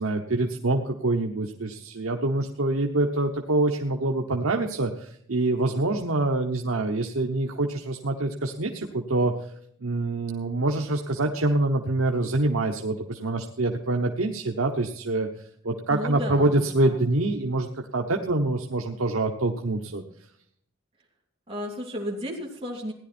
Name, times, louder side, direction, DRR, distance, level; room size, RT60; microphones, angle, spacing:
voice 1, 0.0-9.3 9.8-15.3 15.6-20.0, right 2 dB, 85° right, 3 dB, 1.1 m, -25 dB
voice 2, 15.9-17.1 21.5-22.9, equal, 30° right, -3 dB, 2.7 m, -34 dB
16.5 x 11.0 x 4.3 m, 0.69 s
head